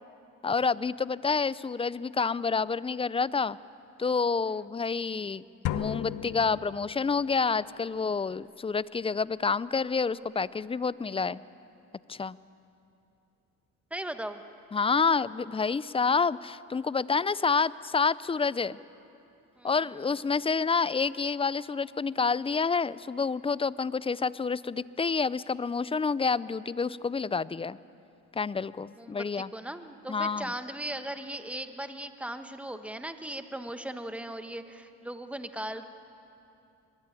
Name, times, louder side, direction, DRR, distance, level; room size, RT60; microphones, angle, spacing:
voice 1, 0.4-3.6 4.0-11.4 12.1-12.4 14.7-18.8 19.6-27.8 28.3-29.5 30.1-30.5, left 5 dB, 20° left, 19 dB, 0.5 m, -28 dB
sound 1, 5.7-7.3, left 11 dB, 80° left, 1.0 m, -35 dB
voice 2, 13.9-14.4 19.6-19.8 29.0-35.8, right 1 dB, 5° right, 8 dB, 1.3 m, -38 dB
23.0 x 20.5 x 9.1 m, 2.7 s
cardioid pair, 90°, 30 cm